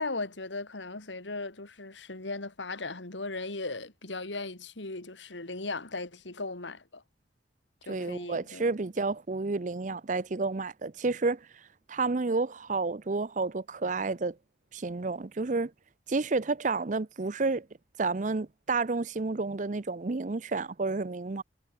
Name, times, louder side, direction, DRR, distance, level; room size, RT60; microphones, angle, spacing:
voice 1, 0.0-7.0 7.9-8.7, left 3 dB, 90° left, 2.8 m, -37 dB
voice 2, 7.9-11.5 11.9-14.4 14.7-15.7 16.1-17.7 18.0-21.4, right 3 dB, 45° right, 0.6 m, -30 dB
head